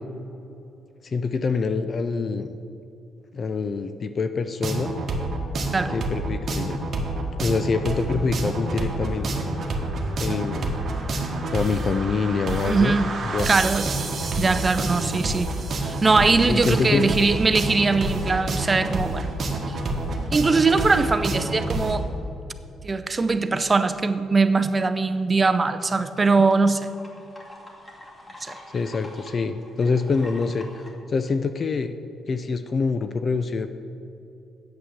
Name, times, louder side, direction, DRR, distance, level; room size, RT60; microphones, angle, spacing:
voice 1, 1.0-2.5 3.3-4.9 5.9-6.8 7.4-9.4 10.2-10.7 11.5-13.0 13.3-13.5 16.5-17.1 28.7-32.0 32.3-33.7, left 4 dB, 45° left, 9 dB, 0.5 m, -25 dB
sound 1, 4.6-22.0, right 2 dB, 50° right, 1.5 m, -28 dB
voice 2, 12.7-13.1 13.5-13.9 14.4-15.5 15.8-19.3 19.7-19.8 20.3-22.1 22.8-26.9 28.4-28.6, right 3 dB, 30° right, 10 dB, 0.6 m, -21 dB
sound 2, 25.2-30.9, left 1 dB, 20° left, 2.1 m, -45 dB
8.5 x 7.7 x 7.2 m, 2.7 s
cardioid pair, 90°, 0 cm